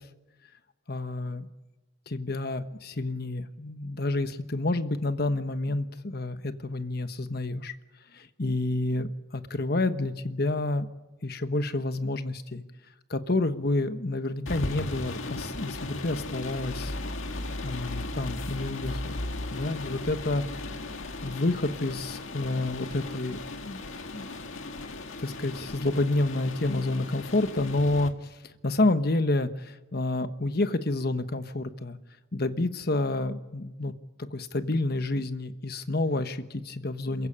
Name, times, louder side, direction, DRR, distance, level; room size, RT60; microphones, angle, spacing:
voice 1, 0.9-1.5 2.1-7.7 8.1-10.9 11.2-12.6 13.1-16.9 17.6-19.2 19.5-20.4 21.2-23.8 24.1-24.3 25.2-28.4 28.6-32.0 32.3-33.9 34.2-37.3, left 2 dB, 50° left, 10 dB, 1.2 m, -29 dB
sound 1, 14.5-28.1, left 2 dB, 85° left, 1.9 m, -37 dB
28.0 x 15.5 x 8.7 m, 1.1 s
head